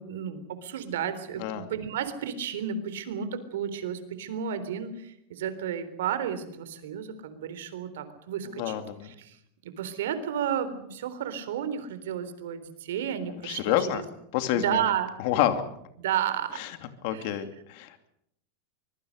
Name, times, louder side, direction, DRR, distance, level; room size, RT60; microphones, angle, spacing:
voice 1, 0.0-8.8 9.0-9.4 9.6-14.0 14.5-15.1 16.0-16.6 17.1-17.4, right 9 dB, 90° right, 12 dB, 3.8 m, -32 dB
voice 2, 8.5-9.1 13.4-14.0 14.3-14.8 15.2-15.6 16.6-16.7 17.0-18.1, left 11 dB, 50° left, 8 dB, 2.7 m, -28 dB
24.5 x 22.0 x 6.6 m, 0.74 s
supercardioid pair, 170°, 0 cm